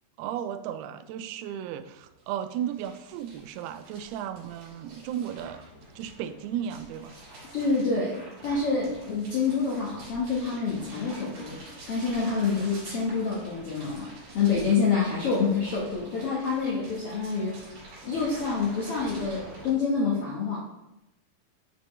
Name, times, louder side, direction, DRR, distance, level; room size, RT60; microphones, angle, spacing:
voice 1, 0.2-5.6 6.0-7.1, right 10 dB, 90° right, 11 dB, 2.5 m, -35 dB
sound 1, 1.0-1.1 1.3-19.7, right 1 dB, 70° right, 4.8 m, -47 dB
voice 2, 7.5-8.1 8.4-11.6 11.9-14.1 14.3-17.5 18.0-20.6, left 4 dB, 65° left, -6 dB, 1.4 m, -27 dB
12.0 x 4.3 x 3.1 m, 0.91 s
omnidirectional pair, 4.4 m